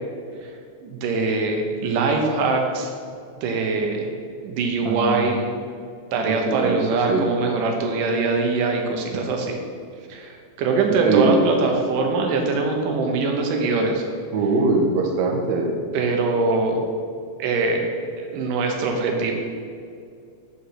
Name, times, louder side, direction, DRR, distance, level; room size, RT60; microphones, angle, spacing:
voice 1, 0.8-2.9 3.4-4.1 4.4-5.4 6.1-9.6 10.1-14.0 15.9-16.8 17.4-17.8 18.2-19.3, right 3 dB, 85° right, 2 dB, 2.5 m, -22 dB
voice 2, 4.8-5.4 6.3-6.8 7.1-7.2 9.1-9.2 11.0-11.4 14.3-15.7, right 3 dB, 70° right, 1 dB, 2.0 m, -22 dB
6.4 x 5.6 x 5.7 m, 2.3 s
omnidirectional pair, 3.7 m